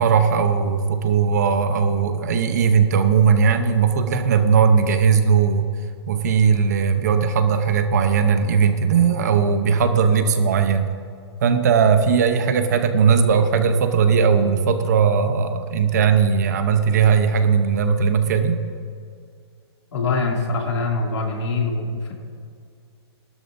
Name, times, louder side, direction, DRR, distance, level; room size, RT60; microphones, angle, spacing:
voice 1, 0.0-5.7 6.1-10.9 11.4-18.6, right 6 dB, 40° right, 8 dB, 0.7 m, -18 dB
voice 2, 19.9-22.1, left 3 dB, 90° left, 0 dB, 2.4 m, -24 dB
18.5 x 12.5 x 2.6 m, 2.3 s
hypercardioid pair, 180°, 14 cm